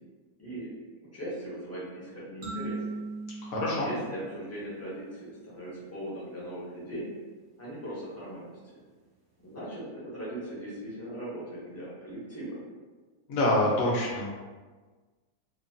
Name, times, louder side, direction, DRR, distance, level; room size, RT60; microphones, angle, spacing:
voice 1, 0.4-0.7 1.0-2.8 3.7-7.1 7.6-8.8 9.4-12.6, right 1 dB, 20° left, -9 dB, 0.4 m, -39 dB
sound 1, 2.4-5.1, right 3 dB, 65° right, 1.0 m, -39 dB
voice 2, 3.4-3.9 13.3-14.3, left 1 dB, 65° left, -4 dB, 1.0 m, -26 dB
2.9 x 2.2 x 2.5 m, 1.4 s
omnidirectional pair, 1.7 m